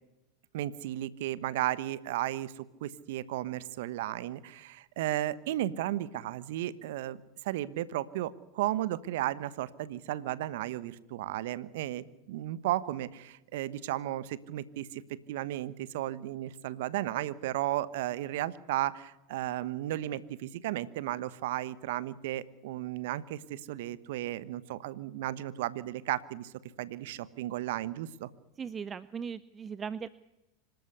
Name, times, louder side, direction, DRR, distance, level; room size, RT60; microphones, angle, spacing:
voice 1, 0.5-26.5 26.8-28.3, right 14 dB, 65° right, 17 dB, 1.2 m, -34 dB
voice 2, 28.6-30.1, right 6 dB, 25° right, 17 dB, 0.7 m, -38 dB
26.0 x 13.0 x 8.2 m, 0.94 s
hypercardioid pair, 90°, 0 cm